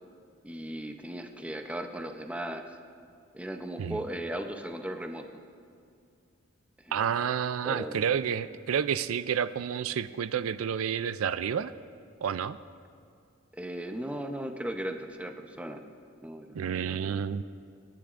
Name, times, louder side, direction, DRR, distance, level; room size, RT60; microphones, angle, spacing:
voice 1, 0.4-2.6 3.3-5.4 6.8-7.1 7.6-8.0 13.5-15.8 16.2-17.2, right 1 dB, 5° right, 5 dB, 0.6 m, -37 dB
voice 2, 6.9-11.7 12.2-12.6 16.5-17.4, right 8 dB, 85° right, 14 dB, 0.4 m, -30 dB
28.5 x 10.0 x 2.5 m, 2.3 s
head